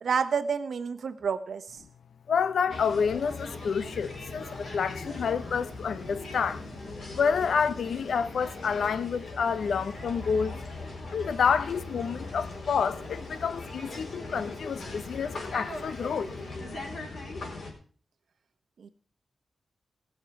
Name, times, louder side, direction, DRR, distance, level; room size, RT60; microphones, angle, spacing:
voice 1, 0.0-1.6 18.8-18.9, right 6 dB, 70° right, 1.2 m, -29 dB
voice 2, 2.3-6.6 7.1-10.6 11.1-16.3, left 6 dB, 80° left, 0.7 m, -28 dB
sound 1, 2.7-17.7, left 2 dB, 60° left, 4.2 m, -39 dB
19.0 x 6.7 x 5.9 m
wide cardioid pair, 155°, 0 cm